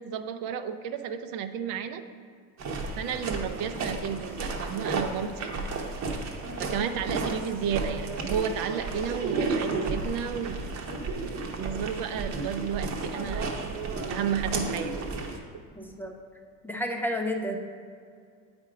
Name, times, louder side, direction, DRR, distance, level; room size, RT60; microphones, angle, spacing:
voice 1, 0.0-2.0 3.0-5.5 6.6-10.6 11.5-13.8 14.1-15.0, right 7 dB, 65° right, 9 dB, 0.6 m, -32 dB
sound 1, 2.6-15.4, right 3 dB, 45° right, 1.0 m, -33 dB
voice 2, 15.8-16.2 16.6-17.6, left 1 dB, 5° left, 2 dB, 0.4 m, -31 dB
8.5 x 4.4 x 4.9 m, 2.2 s
cardioid pair, 140°, 38 cm